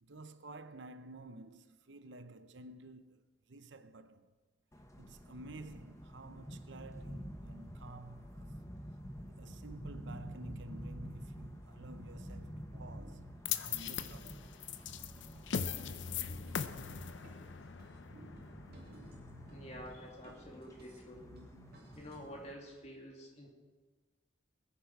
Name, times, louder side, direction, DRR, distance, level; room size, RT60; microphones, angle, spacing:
voice 1, 0.0-4.3 5.0-8.5 9.2-13.3 13.6-14.4, right 2 dB, 65° right, 0.7 m, -51 dB
sound 1, 4.7-22.5, equal, 15° left, 1.1 m, -50 dB
sound 2, 11.8-22.3, equal, 50° right, 2.6 m, -55 dB
sound 3, 13.5-19.7, left 7 dB, 65° left, 0.6 m, -40 dB
voice 2, 19.5-21.3 21.9-23.5, equal, 35° left, 2.6 m, -49 dB
21.5 x 10.5 x 4.8 m
head